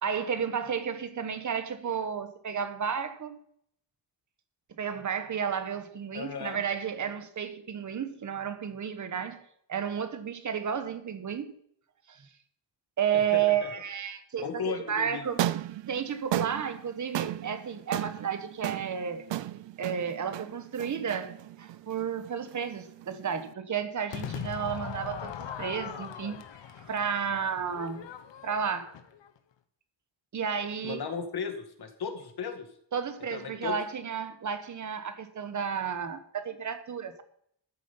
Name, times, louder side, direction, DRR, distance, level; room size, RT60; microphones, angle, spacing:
voice 1, 0.0-3.4 4.7-9.4 9.7-11.5 12.1-12.3 13.0-15.4 15.9-19.3 19.8-26.4 26.8-28.1 28.4-28.9 30.3-31.1 32.9-37.2, right 7 dB, 45° right, 1.2 m, -32 dB
voice 2, 6.1-6.6 13.1-13.7 14.4-15.2 30.8-32.7 33.3-33.8, left 6 dB, 60° left, 2.0 m, -36 dB
sound 1, 15.2-23.5, right 13 dB, 85° right, 0.6 m, -36 dB
Crowd / Fireworks, 24.1-29.4, left 8 dB, 85° left, 1.2 m, -40 dB
14.0 x 7.4 x 5.6 m
wide cardioid pair, 180°, 42 cm